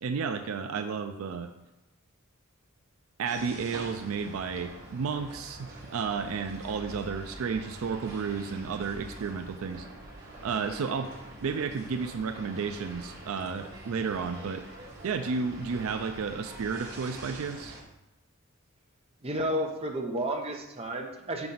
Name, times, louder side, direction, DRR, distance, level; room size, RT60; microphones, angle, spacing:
voice 1, 0.0-1.5 3.2-9.9 10.4-11.1 11.4-14.6 15.0-17.8, right 5 dB, 75° right, 8 dB, 0.4 m, -32 dB
sound 1, 3.3-17.8, right 1 dB, 50° right, 1.4 m, -45 dB
voice 2, 19.2-21.5, right 1 dB, 30° right, 2 dB, 0.8 m, -31 dB
5.9 x 5.1 x 3.9 m, 0.95 s
head